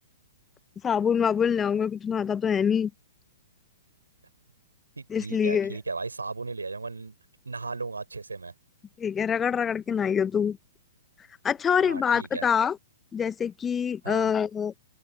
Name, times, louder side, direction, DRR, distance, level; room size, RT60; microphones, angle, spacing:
voice 1, 0.8-2.9 5.1-5.7 9.0-10.6 11.4-12.8 13.1-14.7, left 7 dB, 15° left, 0.9 m, -25 dB
voice 2, 5.0-7.1 7.5-8.5 11.7-12.5 14.0-14.3, right 3 dB, 75° right, 5.2 m, -36 dB
figure-of-eight pair, 115°, 0 cm